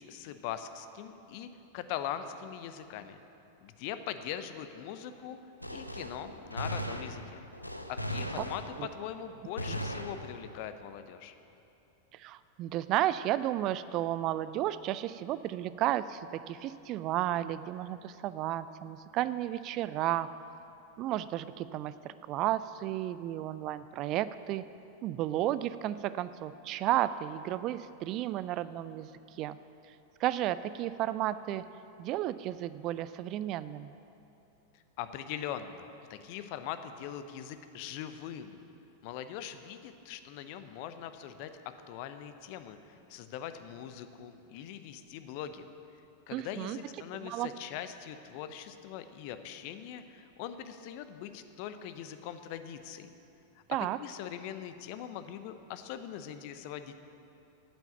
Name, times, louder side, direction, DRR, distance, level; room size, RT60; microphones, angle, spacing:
voice 1, 0.0-3.2 3.6-5.4 5.7-7.4 7.9-11.3 34.7-38.6 39.0-45.7 46.3-53.1 53.5-53.6 54.0-56.9, left 10 dB, 45° left, 10 dB, 0.7 m, -41 dB
Gunshot gunfire, 5.6-9.1 9.6-10.7, equal, 85° left, 0.6 m, -38 dB
voice 2, 12.1-20.3 21.0-24.6 25.0-29.6 29.9-30.0 30.2-31.6 32.0-33.9 46.3-46.8 47.2-47.5 53.7-54.0, right 13 dB, 40° right, 15 dB, 0.3 m, -33 dB
8.9 x 8.2 x 8.9 m, 2.7 s
figure-of-eight pair, 90°, 0 cm